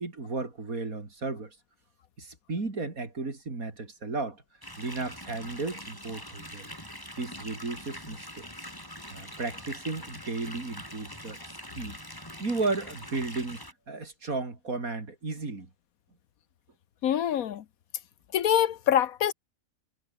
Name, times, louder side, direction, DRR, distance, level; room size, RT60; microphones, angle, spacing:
voice 1, 0.0-1.6 2.2-4.4 4.8-6.7 7.2-8.7 9.1-11.4 11.8-12.0 12.4-15.7, right 3 dB, 85° right, 4.2 m, -34 dB
sound 1, 4.6-13.7, equal, 15° left, 7.8 m, -43 dB
voice 2, 17.0-17.6 18.3-19.3, left 10 dB, 85° left, 1.4 m, -25 dB
omnidirectional pair, 1.4 m